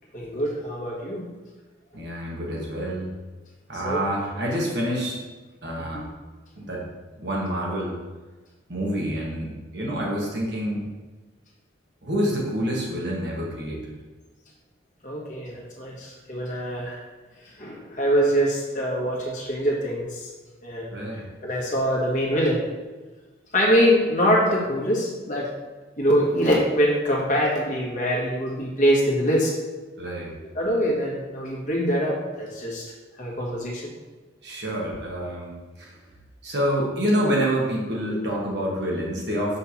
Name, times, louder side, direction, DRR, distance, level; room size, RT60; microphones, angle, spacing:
voice 1, 0.1-1.3 3.8-4.0 5.8-6.0 15.0-17.0 17.6-20.3 20.6-21.1 21.4-22.6 23.5-25.5 26.0-29.5 30.5-32.8 33.2-33.9 38.1-38.2, equal, 40° left, -4 dB, 1.5 m, -24 dB
voice 2, 1.9-3.1 3.7-5.2 5.6-6.0 6.6-6.8 7.2-8.0 8.7-10.8 12.0-13.9 20.9-21.2 30.0-30.3 34.4-35.9 36.4-39.6, equal, 55° right, -3 dB, 1.5 m, -27 dB
5.5 x 3.4 x 5.7 m, 1.3 s
head